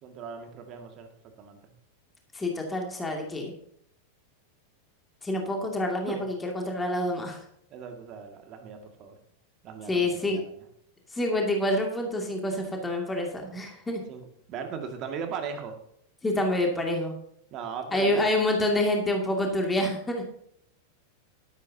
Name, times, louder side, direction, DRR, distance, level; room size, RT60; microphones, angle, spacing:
voice 1, 0.0-1.1 1.4-1.7 6.1-6.2 7.7-9.2 9.6-10.5 14.1-14.2 14.5-15.8 17.5-18.2, right 6 dB, 35° right, 4 dB, 2.1 m, -38 dB
voice 2, 2.3-3.5 5.2-6.2 6.4-7.4 9.9-10.4 11.1-14.0 16.2-17.1 17.9-20.2, left 1 dB, 10° left, 1 dB, 2.4 m, -27 dB
12.5 x 12.0 x 2.8 m, 0.69 s
figure-of-eight pair, 90°, 0 cm